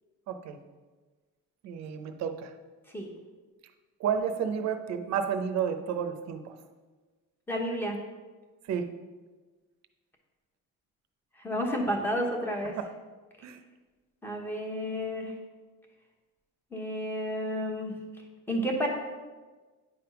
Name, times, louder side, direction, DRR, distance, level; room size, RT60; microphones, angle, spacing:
voice 1, 0.3-0.6 1.6-2.5 4.0-6.6 8.6-8.9 12.8-12.9 13.4-13.6, right 7 dB, 60° right, 8 dB, 0.7 m, -31 dB
voice 2, 7.5-8.0 11.4-12.7 14.2-15.3 16.7-17.9 18.5-18.9, equal, 5° left, 0 dB, 1.0 m, -31 dB
9.8 x 3.5 x 5.8 m, 1.3 s
cardioid pair, 180°, 30 cm